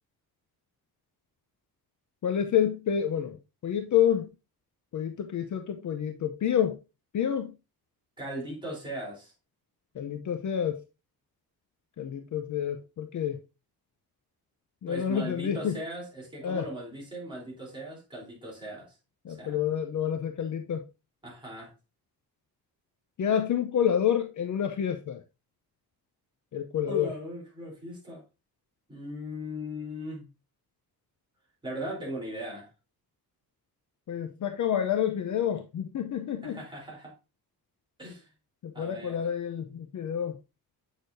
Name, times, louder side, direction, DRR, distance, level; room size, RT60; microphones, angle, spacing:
voice 1, 2.2-4.3 4.9-6.8 7.1-7.5 9.9-10.8 12.0-13.4 14.8-15.8 16.4-16.7 19.2-20.8 23.2-25.2 26.5-27.1 34.1-36.6 38.6-40.4, left 9 dB, 50° left, 0.7 m, -28 dB
voice 2, 8.2-9.3 14.9-18.9 19.3-19.6 21.2-21.7 26.9-28.2 28.9-30.3 31.6-32.7 36.4-37.1 38.0-38.3 38.7-39.3, equal, 10° right, 3.5 m, -38 dB
8.1 x 6.5 x 2.6 m
wide cardioid pair, 175°, 39 cm